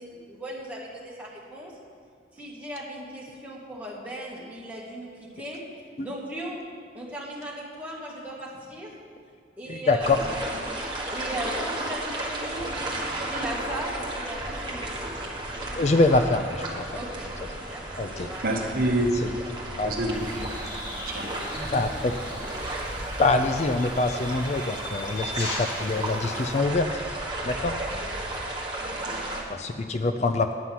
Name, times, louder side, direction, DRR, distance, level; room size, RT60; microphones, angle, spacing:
voice 1, 0.0-1.7 2.3-5.7 6.0-6.6 6.9-8.9 9.6-10.5 11.1-15.3 16.9-17.3 17.7-18.8, right 1 dB, 10° right, -5 dB, 1.7 m, -38 dB
voice 2, 9.7-10.2 15.7-16.8 18.0-18.3 19.2-19.3 19.8-19.9 21.7-22.1 23.2-26.9 27.4-27.7 29.5-30.5, left 3 dB, 40° left, 7 dB, 0.4 m, -24 dB
sound 1, 10.0-29.4, right 1 dB, 25° right, 1.4 m, -33 dB
voice 3, 18.4-19.2 19.8-20.6 28.8-29.4, right 1 dB, 50° right, 2 dB, 1.0 m, -27 dB
sound 2, 20.1-26.6, equal, 60° left, 2.5 m, -40 dB
9.8 x 5.6 x 7.6 m, 2.2 s
head